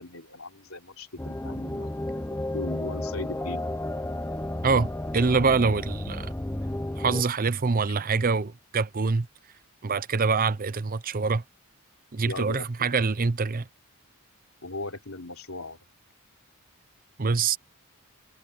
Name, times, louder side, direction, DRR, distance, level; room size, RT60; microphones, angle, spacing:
voice 1, 0.0-3.7 12.2-13.0 14.6-15.8, left 2 dB, 70° left, 3.4 m, -38 dB
sound 1, 1.2-7.2, left 1 dB, 10° left, 0.7 m, -32 dB
voice 2, 4.6-6.3 7.0-9.3 9.8-11.4 12.1-13.7 17.2-17.6, right 4 dB, 40° right, 0.6 m, -25 dB
head